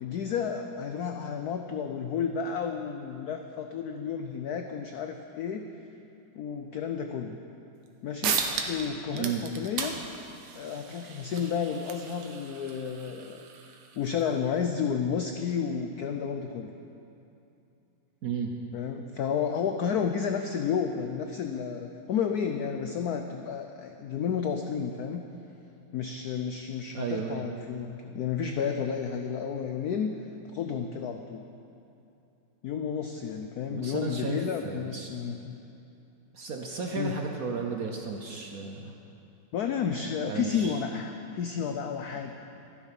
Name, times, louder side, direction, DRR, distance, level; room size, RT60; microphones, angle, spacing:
voice 1, 0.0-5.6 6.4-7.4 8.0-10.0 10.6-13.4 13.9-16.7 18.7-25.2 25.9-30.1 30.5-31.4 32.6-35.6 37.0-37.2 39.5-42.3, left 7 dB, 80° left, 5 dB, 0.8 m, -31 dB
sound 1, 7.9-8.0 8.2-8.9 9.1-14.3, right 6 dB, 85° right, 1.9 m, -35 dB
voice 2, 9.1-9.4 18.2-18.5 26.9-27.5 33.7-35.1 36.3-38.9 40.3-40.8, right 4 dB, 55° right, 2 dB, 1.0 m, -33 dB
13.0 x 11.0 x 5.9 m, 2.8 s
omnidirectional pair, 2.3 m